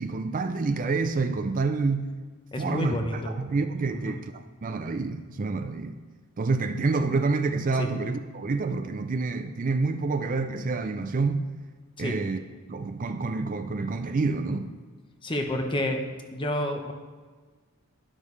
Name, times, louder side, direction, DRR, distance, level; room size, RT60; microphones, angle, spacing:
voice 1, 0.0-2.1 2.6-6.0 6.4-11.4 12.0-12.4 12.7-14.7, right 3 dB, 35° right, 0.4 m, -28 dB
voice 2, 2.5-3.5 3.9-4.2 7.8-7.9 12.0-12.2 14.5-14.6 15.2-16.0 16.3-16.9, left 1 dB, 20° left, 1.0 m, -29 dB
11.5 x 11.5 x 3.3 m
head